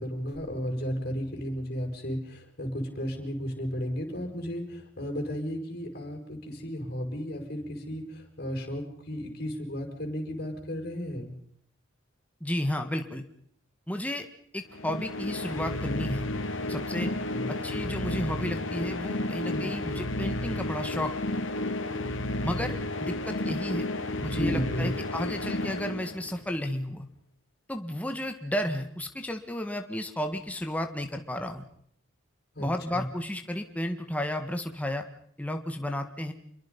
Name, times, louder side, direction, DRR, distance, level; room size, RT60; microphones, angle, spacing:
voice 1, 0.0-11.3 17.3-17.5 19.5-19.7 24.3-24.9 32.6-33.1, equal, 45° left, 2 dB, 5.5 m, -34 dB
voice 2, 12.4-13.2 13.9-14.3 14.5-16.2 16.7-17.1 17.5-21.1 22.4-23.9 24.2-27.1 27.7-31.6 32.6-35.0 35.4-36.3, left 1 dB, 5° left, 5 dB, 1.6 m, -32 dB
sound 1, 14.7-26.6, left 1 dB, 65° left, 2.2 m, -32 dB
28.0 x 23.0 x 5.4 m, 0.66 s
head